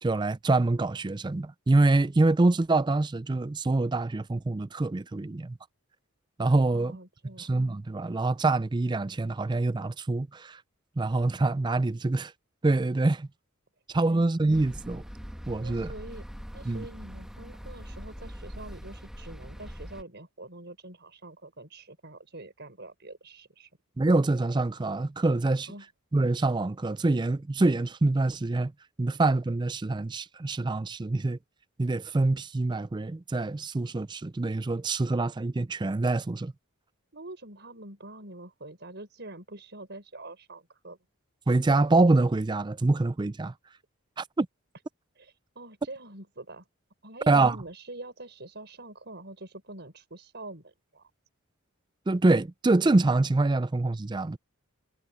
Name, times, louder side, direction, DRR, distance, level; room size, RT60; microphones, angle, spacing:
voice 1, 0.0-5.6 6.4-7.0 7.4-10.6 11.0-12.3 12.6-13.3 13.9-15.0 15.5-15.9 16.7-16.8 24.0-25.7 26.1-28.7 29.0-31.4 31.8-36.5 41.5-43.5 44.2-44.5 47.3-47.6 52.1-54.4, right 2 dB, 20° right, 0.4 m, -25 dB
voice 2, 6.7-7.5 14.0-14.3 15.6-16.3 16.5-23.7 25.6-25.9 37.1-41.0 45.1-46.7 47.0-51.1, right 2 dB, 50° right, 6.2 m, -45 dB
sound 1, 14.5-20.0, equal, ahead, 1.3 m, -42 dB
head